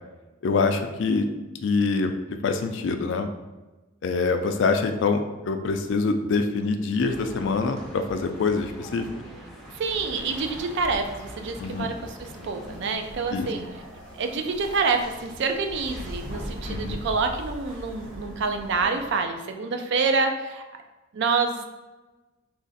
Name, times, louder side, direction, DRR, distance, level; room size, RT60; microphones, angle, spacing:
voice 1, 0.4-1.3 1.6-2.1 2.4-3.3 4.0-9.1 11.6-11.9 13.3-13.5 16.7-17.0, left 4 dB, 65° left, 7 dB, 0.4 m, -25 dB
sound 1, 6.9-13.9 14.9-18.9, equal, 35° right, 0.9 m, -42 dB
sound 2, 7.0-12.8, equal, ahead, 0.5 m, -43 dB
voice 2, 9.7-13.6 14.2-20.6 21.1-21.6, right 4 dB, 60° right, 5 dB, 0.4 m, -27 dB
sound 3, 9.8-19.2, equal, 80° right, 1.2 m, -45 dB
3.2 x 2.5 x 3.9 m, 1.1 s
head